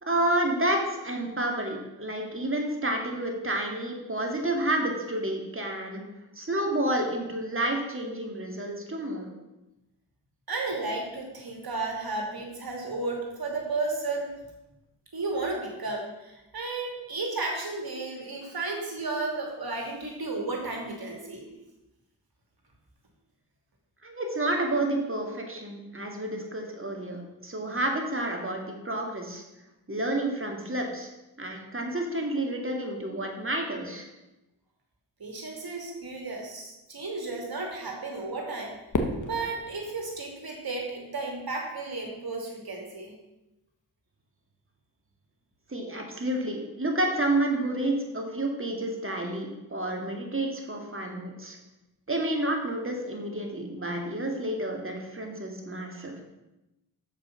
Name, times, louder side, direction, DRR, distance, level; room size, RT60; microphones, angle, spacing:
voice 1, 0.0-6.0 6.4-9.3 24.0-29.4 29.9-31.1 31.4-34.1 45.7-51.6 52.1-56.2, right 1 dB, 30° right, 2 dB, 2.2 m, -30 dB
voice 2, 10.5-14.3 15.1-21.5 35.2-38.8 39.2-43.1, right 3 dB, 50° right, 0 dB, 2.8 m, -33 dB
Fireworks, 38.9-41.2, left 2 dB, 40° left, 1.3 m, -34 dB
6.7 x 5.8 x 5.8 m, 0.97 s
supercardioid pair, 40°, 45 cm